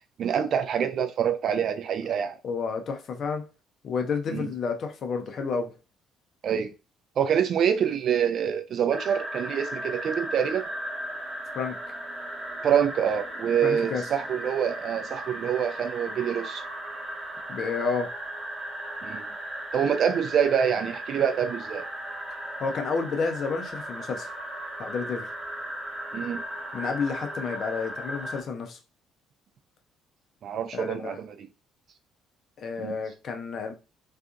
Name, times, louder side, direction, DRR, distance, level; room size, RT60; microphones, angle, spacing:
voice 1, 0.2-2.4 4.3-4.5 6.4-6.7 7.2-10.6 12.6-16.6 19.0-19.3 19.7-21.9 26.1-26.4 30.4-31.5 32.8-33.0, right 8 dB, 55° right, 0.4 m, -26 dB
voice 2, 2.4-3.4 3.8-5.7 11.5-11.8 13.6-14.1 17.5-18.1 22.6-24.3 24.8-25.3 26.7-28.8 30.7-31.2 32.6-33.7, left 5 dB, 50° left, 0.6 m, -30 dB
sound 1, 8.9-28.4, right 1 dB, 15° right, 1.0 m, -36 dB
2.5 x 2.4 x 2.5 m
figure-of-eight pair, 50°, 0 cm